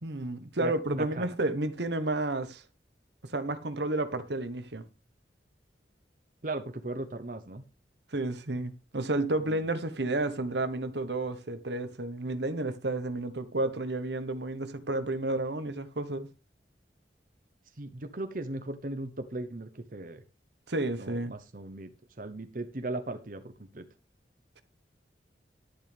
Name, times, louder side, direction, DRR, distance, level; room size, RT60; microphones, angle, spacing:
voice 1, 0.0-2.6 3.2-4.8 8.1-16.3 20.7-21.3, right 2 dB, 75° right, 1.2 m, -31 dB
voice 2, 0.6-1.3 6.4-7.6 9.4-9.6 17.8-20.2 21.0-21.9 22.2-23.8, right 2 dB, 50° right, 1.0 m, -37 dB
11.0 x 10.5 x 3.5 m
head